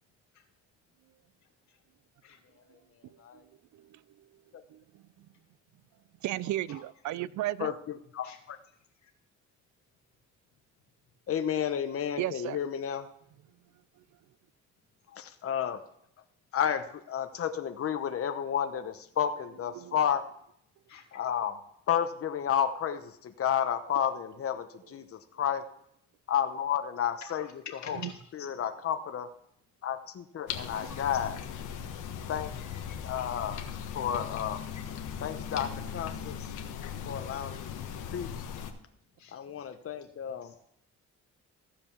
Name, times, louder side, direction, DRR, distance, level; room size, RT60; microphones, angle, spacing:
voice 1, 4.7-5.0 6.2-7.7 12.2-12.6 19.8-20.0 27.9-28.1, right 15 dB, 70° right, 0.5 m, -34 dB
voice 2, 8.1-8.6 11.3-13.1 15.2-15.8 16.5-20.2 21.1-21.6 21.9-25.6 26.3-28.0 28.3-29.3 29.8-31.4 32.3-32.5 33.0-33.6 33.9-34.6 35.2-36.5 37.0-37.7 38.1-38.5 39.3-40.5, left 9 dB, 50° left, 0.9 m, -31 dB
voice 3, 20.9-21.2 27.3-27.9 28.4-28.5 30.7-31.0 39.2-39.6 40.4-40.6, left 7 dB, 70° left, 2.3 m, -48 dB
sound 1, 30.5-38.7, left 8 dB, 85° left, 1.3 m, -39 dB
15.0 x 5.2 x 7.2 m
cardioid pair, 90°, 30 cm